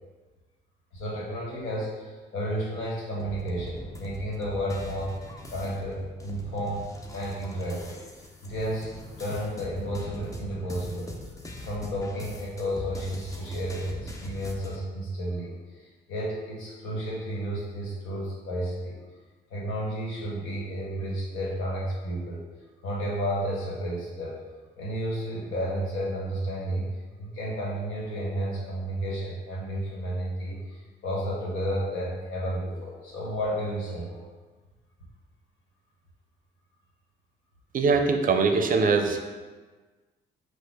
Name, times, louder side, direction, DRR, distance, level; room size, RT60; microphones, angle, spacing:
voice 1, 0.9-5.1 5.5-6.9 7.1-8.0 8.4-8.9 9.2-11.1 11.6-19.0 19.5-22.4 22.8-24.4 24.8-26.8 27.2-34.2, equal, 90° left, -5 dB, 1.4 m, -32 dB
sound 1, 3.2-14.8, left 1 dB, 15° left, 0.5 m, -41 dB
voice 2, 37.7-39.2, right 4 dB, 45° right, 5 dB, 0.5 m, -22 dB
4.2 x 2.4 x 4.7 m, 1.3 s
cardioid pair, 90°, 20 cm